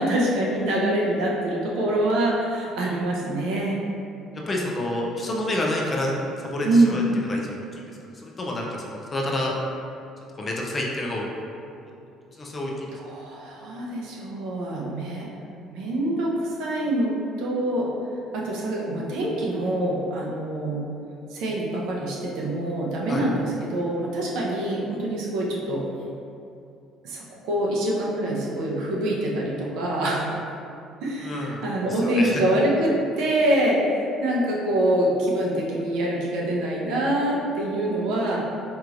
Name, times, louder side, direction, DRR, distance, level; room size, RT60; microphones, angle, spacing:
voice 1, 0.0-3.8 6.6-7.0 12.9-15.3 15.7-17.1 17.4-17.9 18.3-20.8 21.3-25.8 27.0-30.4 31.0-38.4, right 1 dB, 75° right, -4 dB, 0.7 m, -25 dB
voice 2, 4.5-7.0 7.3-7.8 8.2-9.5 10.4-11.2 12.4-12.9 23.1-23.3 31.2-32.4, left 1 dB, 25° left, -2 dB, 0.5 m, -28 dB
4.5 x 3.0 x 2.5 m, 2.6 s
cardioid pair, 150°, 0 cm